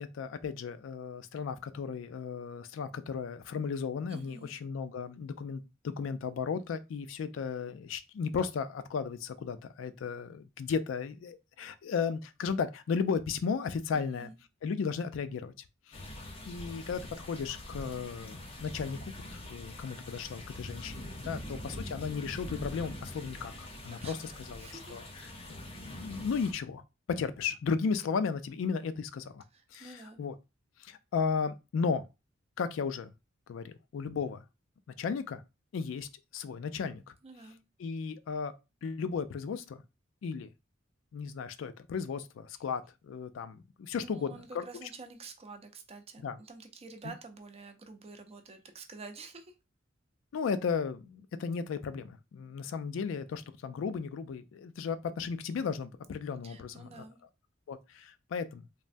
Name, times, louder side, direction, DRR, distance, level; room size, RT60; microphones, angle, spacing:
voice 1, 0.0-14.3 14.6-15.5 15.9-26.8 27.1-29.4 29.7-30.3 30.8-32.1 32.6-33.1 33.5-34.4 35.0-35.4 35.7-37.0 37.8-38.5 38.8-39.8 40.2-40.5 41.1-44.6 46.2-46.4 47.0-47.1 50.3-57.0 57.7-58.6, left 5 dB, 80° left, 0.3 m, -35 dB
voice 2, 4.1-4.5 13.9-14.4 19.7-20.0 21.2-21.6 23.6-23.7 24.0-25.0 29.5-30.2 37.2-37.6 44.0-49.5 56.4-57.2, right 3 dB, 30° right, 0.5 m, -49 dB
sound 1, 15.9-26.5, left 1 dB, 30° left, 0.6 m, -44 dB
3.3 x 2.1 x 2.5 m
head